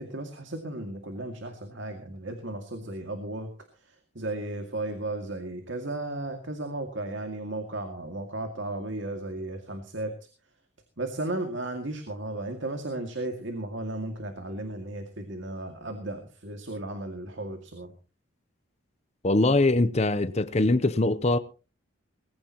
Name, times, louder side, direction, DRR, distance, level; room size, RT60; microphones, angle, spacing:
voice 1, 0.0-10.1 11.0-17.9, right 2 dB, 60° right, 2.2 m, -35 dB
voice 2, 19.2-21.4, left 2 dB, 30° left, 0.7 m, -22 dB
19.5 x 16.0 x 3.0 m
head